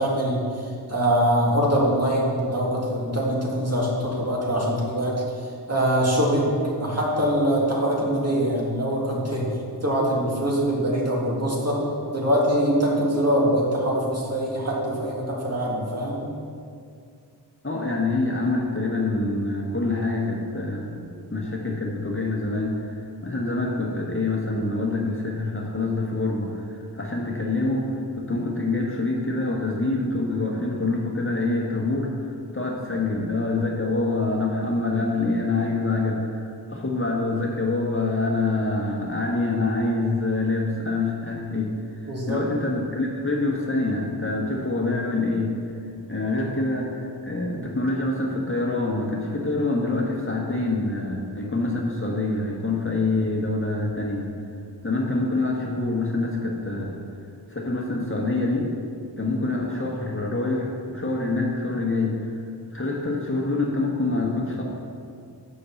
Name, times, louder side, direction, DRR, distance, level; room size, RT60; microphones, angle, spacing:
voice 1, 0.0-5.1 5.7-6.5 6.8-9.5 9.8-11.8 12.1-16.2 42.1-42.4, equal, 35° right, -4 dB, 2.1 m, -23 dB
voice 2, 17.6-45.5 46.1-54.3 54.8-57.0 57.5-58.7 59.2-62.3 62.7-64.6, left 2 dB, 30° left, -2 dB, 1.2 m, -26 dB
6.4 x 5.3 x 7.0 m, 2.4 s
wide cardioid pair, 50°, 42 cm